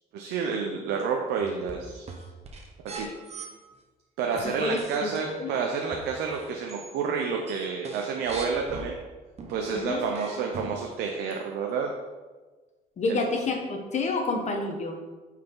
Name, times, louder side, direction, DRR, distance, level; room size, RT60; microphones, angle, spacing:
voice 1, 0.1-2.1 2.8-3.1 4.2-9.0 9.5-11.9 13.1-13.2, right 5 dB, 80° right, 1 dB, 0.9 m, -29 dB
sound 1, 1.4-3.5 4.4-6.9 7.2-8.9 9.4-10.9 11.3-11.4, right 3 dB, 40° right, 1.1 m, -41 dB
voice 2, 4.4-5.1 5.4-5.5 9.7-10.1 13.0-15.0, left 3 dB, 45° left, 3 dB, 1.3 m, -29 dB
8.8 x 4.7 x 3.9 m, 1.3 s
cardioid pair, 110°, 17 cm